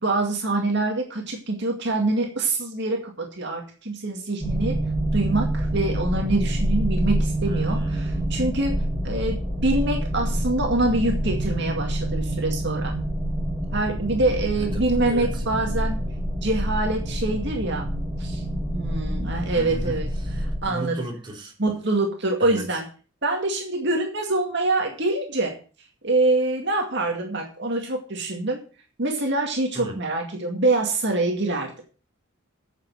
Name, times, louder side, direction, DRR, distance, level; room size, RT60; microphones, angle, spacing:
voice 1, 0.0-4.8 5.1-12.9 13.7-16.0 16.4-17.9 18.2-18.4 18.7-20.1 20.6-21.0 21.6-22.9 23.2-25.6 26.0-28.6 29.0-31.7, right 2 dB, 55° right, 1 dB, 2.2 m, -25 dB
sound 1, 4.4-20.6, right 1 dB, ahead, 1.9 m, -27 dB
voice 2, 7.4-8.4 14.6-15.4 19.5-21.5 22.4-22.8 29.7-30.0, right 1 dB, 20° right, -1 dB, 3.1 m, -37 dB
9.3 x 7.1 x 7.7 m, 0.38 s
head